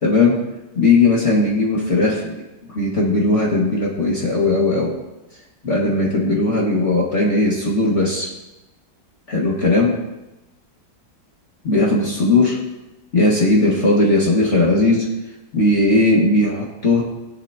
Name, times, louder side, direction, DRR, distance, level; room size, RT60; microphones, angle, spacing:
voice 1, 0.0-0.4 0.8-2.4 2.7-4.9 5.6-8.3 9.3-10.0 11.6-12.6 13.1-15.1 15.5-17.0, left 2 dB, 40° left, -4 dB, 2.3 m, -17 dB
22.5 x 8.3 x 2.9 m, 0.97 s
omnidirectional pair, 1.9 m